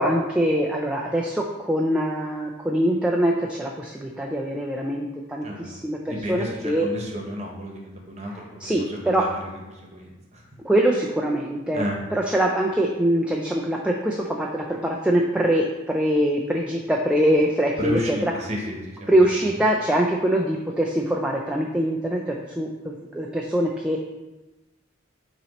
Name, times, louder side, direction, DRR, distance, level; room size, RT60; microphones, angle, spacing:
voice 1, 0.0-6.9 8.6-9.2 10.6-11.8 12.1-18.3 19.1-24.0, right 1 dB, 5° right, -1 dB, 0.3 m, -23 dB
voice 2, 6.1-10.4 11.7-12.0 17.8-19.1, left 1 dB, 35° right, 0 dB, 1.0 m, -32 dB
7.9 x 3.0 x 4.1 m, 1.1 s
head